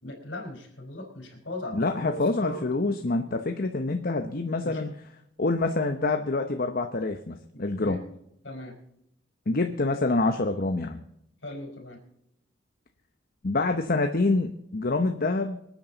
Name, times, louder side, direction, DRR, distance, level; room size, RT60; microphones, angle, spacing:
voice 1, 0.0-2.6 3.3-3.4 4.6-4.9 7.5-8.0 8.4-8.8 11.4-12.0, left 1 dB, 70° left, 3 dB, 4.4 m, -39 dB
voice 2, 1.7-4.9 5.4-8.0 9.5-11.0 13.4-15.6, left 3 dB, 50° left, 6 dB, 0.9 m, -26 dB
25.5 x 9.1 x 4.0 m, 0.78 s
head